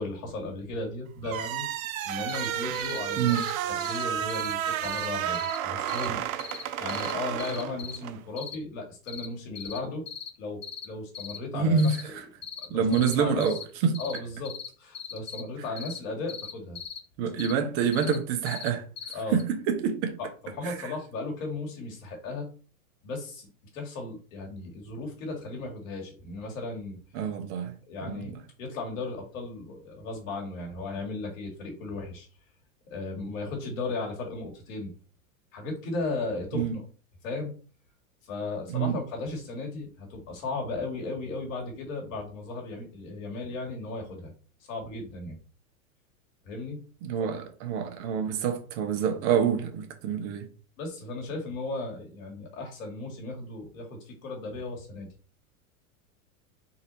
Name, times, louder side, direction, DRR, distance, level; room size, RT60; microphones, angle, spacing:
voice 1, 0.0-1.7 2.0-6.2 6.8-10.1 10.4-12.2 12.6-13.5 14.0-14.5 14.8-16.8 19.1-19.4 20.2-22.5 23.0-27.0 27.9-32.3 32.9-34.9 35.5-36.8 37.2-37.5 38.2-44.3 44.7-45.4 46.4-46.8 47.2-47.4 50.8-55.1, left 3 dB, 65° left, 2.1 m, -36 dB
sound 1, 1.2-8.2, right 10 dB, 70° right, 0.6 m, -32 dB
sound 2, 2.3-2.5 2.7-3.0 3.3-3.5 3.8-4.0 4.3-4.5 4.8-5.1 5.3-5.6 5.9-6.1 6.4-6.6 6.9-7.1 7.4-8.0 8.4-8.6 9.1-9.3 9.6-9.8 10.1-10.3 10.6-10.9 11.1-11.4 11.8-12.0 12.4-12.7 12.9-13.2 13.4-13.6 13.9-14.2 14.4-14.7 14.9-15.4 15.8-16.0 16.3-17.0 17.4-17.5 17.9-18.2 18.5-18.7 19.0-19.1 19.4-19.5, left 7 dB, 15° left, 0.4 m, -39 dB
voice 2, 3.2-3.5 11.5-12.2 12.7-13.6 13.8-14.0 17.2-18.8 19.3-20.2 20.6-20.9 27.1-27.7 28.0-28.3 36.5-36.7 38.7-39.0 47.0-50.5, right 6 dB, 50° right, 1.1 m, -27 dB
4.2 x 2.8 x 4.0 m
hypercardioid pair, 110°, 42 cm